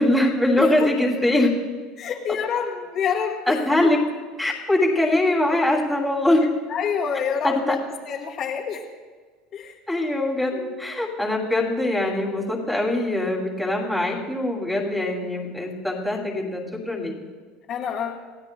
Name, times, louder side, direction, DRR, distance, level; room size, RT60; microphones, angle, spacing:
voice 1, 0.0-1.5 3.5-4.0 4.4-6.4 7.4-7.7 9.9-10.5 10.8-17.2, left 1 dB, ahead, -4 dB, 2.7 m, -22 dB
voice 2, 0.6-0.9 2.0-3.6 6.7-7.8 8.0-8.8 9.5-9.7 10.5-10.8 17.7-18.2, left 7 dB, 40° left, -1 dB, 2.0 m, -27 dB
29.5 x 15.5 x 2.3 m, 1.4 s
cardioid pair, 150°, 0 cm